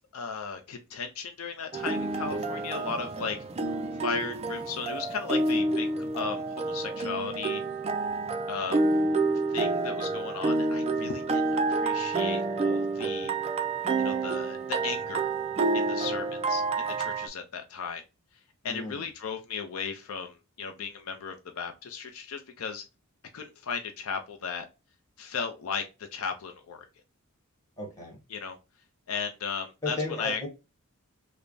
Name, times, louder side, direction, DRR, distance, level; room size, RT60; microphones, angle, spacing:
voice 1, 0.1-3.4 4.0-7.6 8.5-8.8 9.5-13.3 14.0-15.3 15.7-18.0 18.6-22.8 23.3-24.7 25.2-26.8 28.3-28.6 29.1-30.5, left 5 dB, 75° left, 0.5 m, -36 dB
sound 1, 1.7-17.3, right 3 dB, 30° right, 0.4 m, -29 dB
voice 2, 18.6-19.0 27.8-28.2 29.8-30.5, left 2 dB, 15° left, 1.4 m, -34 dB
3.3 x 2.1 x 3.8 m
head